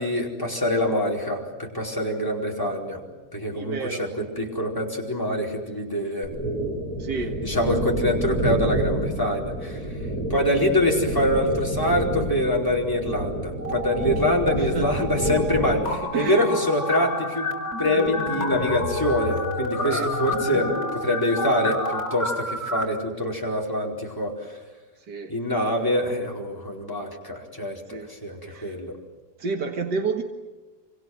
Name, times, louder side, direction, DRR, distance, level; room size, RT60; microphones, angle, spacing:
voice 1, 0.0-3.0 3.3-6.3 7.4-9.8 10.3-17.5 17.8-24.4 25.3-28.9, left 1 dB, 10° left, -1 dB, 4.6 m, -25 dB
voice 2, 3.5-4.1 7.0-7.4 14.6-14.9 15.6-15.7 15.9-16.5 19.9-20.1 25.1-25.3 27.9-28.1 28.5-28.7 29.4-30.2, right 4 dB, 90° right, 4 dB, 2.3 m, -29 dB
sound 1, 6.2-15.9, right 1 dB, 20° right, 6.5 m, -29 dB
sound 2, 13.6-14.5 14.8-22.8, left 2 dB, 45° left, 4.5 m, -29 dB
27.0 x 25.5 x 7.9 m, 1.2 s
omnidirectional pair, 1.7 m